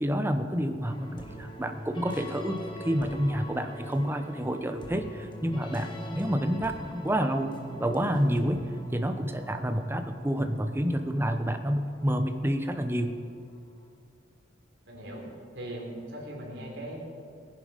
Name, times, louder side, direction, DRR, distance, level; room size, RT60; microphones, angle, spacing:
voice 1, 0.0-7.5 7.8-13.2, equal, 15° right, 7 dB, 0.8 m, -29 dB
sound 1, 0.8-13.4, equal, 25° left, 1.4 m, -41 dB
voice 2, 14.9-17.0, right 1 dB, 80° right, -2 dB, 3.6 m, -39 dB
18.5 x 10.5 x 5.1 m, 2.3 s
head